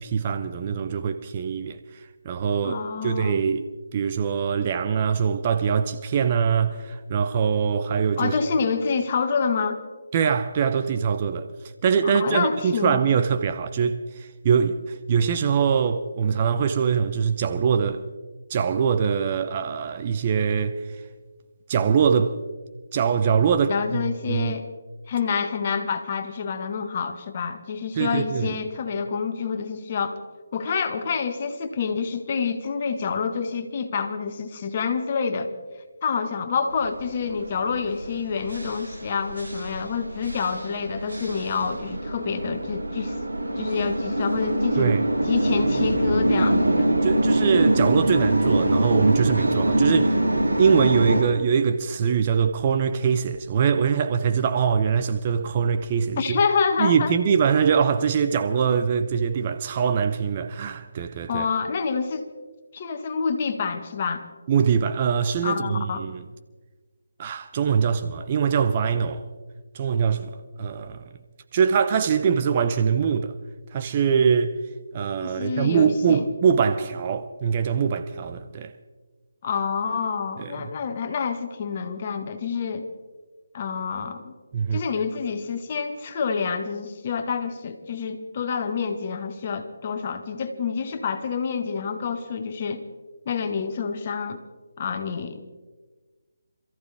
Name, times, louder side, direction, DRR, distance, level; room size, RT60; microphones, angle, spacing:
voice 1, 0.0-1.8 2.2-8.3 10.1-11.5 11.8-14.8 15.1-18.0 18.5-20.8 21.7-22.3 22.9-24.0 24.3-24.6 28.0-28.5 44.8-45.0 47.0-50.2 50.6-56.4 56.8-61.5 64.5-66.2 67.2-69.2 69.7-71.0 71.5-73.3 73.7-74.5 74.9-78.7 80.4-80.5 84.5-84.8, right 6 dB, 30° right, 0.8 m, -23 dB
voice 2, 2.6-3.4 8.2-9.8 12.0-13.0 23.7-24.7 25.1-30.2 30.5-35.5 36.0-43.2 43.6-45.0 45.3-46.9 56.2-57.1 61.3-62.3 62.7-64.3 65.4-66.0 75.2-76.2 79.4-82.9 83.5-84.3 84.7-92.8 93.3-94.4 94.8-95.4, left 5 dB, 35° left, 1.6 m, -27 dB
sound 1, 36.8-51.2, right 1 dB, 65° right, 6.7 m, -24 dB
27.0 x 14.5 x 3.5 m
figure-of-eight pair, 155°, 0 cm